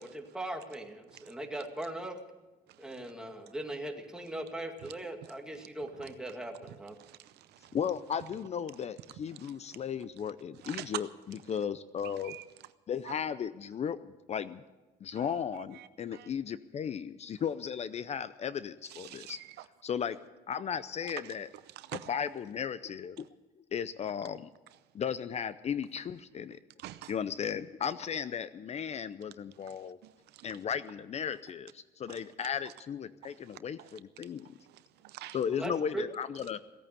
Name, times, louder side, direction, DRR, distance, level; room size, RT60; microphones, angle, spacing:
voice 1, 0.0-2.2 2.8-7.0 35.5-36.1, right 1 dB, 5° right, 2.1 m, -39 dB
voice 2, 7.0-7.7 10.6-11.0 12.0-12.4 13.1-13.2 15.2-15.4 15.8-16.3 18.9-19.6 21.8-22.1 26.8-27.1 30.0-30.5 33.8-33.9 35.0-35.4, right 14 dB, 75° right, 0.7 m, -44 dB
voice 3, 7.7-12.4 12.9-14.6 15.0-19.4 19.8-20.2 20.5-21.5 21.9-23.3 23.7-24.5 24.9-26.6 27.1-30.0 30.4-34.6 35.3-36.6, left 7 dB, 40° left, 0.6 m, -35 dB
17.0 x 8.7 x 9.3 m
cardioid pair, 110°, 17 cm